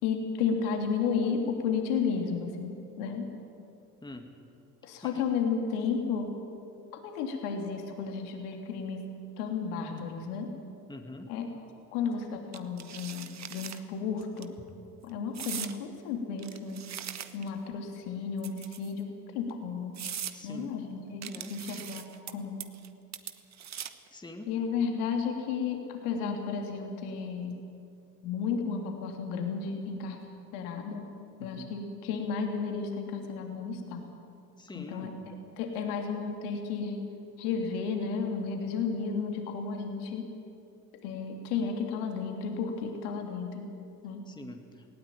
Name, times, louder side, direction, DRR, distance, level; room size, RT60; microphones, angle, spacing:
voice 1, 0.0-3.3 4.8-6.3 6.9-9.0 9.4-10.5 11.3-11.5 11.9-14.5 15.0-16.8 17.3-19.1 19.3-19.9 20.4-22.6 24.5-27.6 28.2-30.2 30.5-31.0 31.4-34.0 34.7-37.0 37.4-40.3 41.0-43.7 44.0-44.2, left 5 dB, 70° left, 3 dB, 3.2 m, -33 dB
voice 2, 10.9-11.3 20.3-20.7 21.3-21.5 24.1-24.5 31.4-31.7 34.6-35.2 44.3-44.9, left 2 dB, 10° left, 4 dB, 2.2 m, -45 dB
sound 1, 12.5-13.8 14.2-14.4 15.3-15.8 16.4-17.6 18.4-19.0 19.5-19.6 19.9-20.4 21.2-22.3 22.6-22.9 23.1-24.1, right 9 dB, 35° right, 1.4 m, -40 dB
19.0 x 17.5 x 9.3 m, 2.5 s
hypercardioid pair, 70°, 46 cm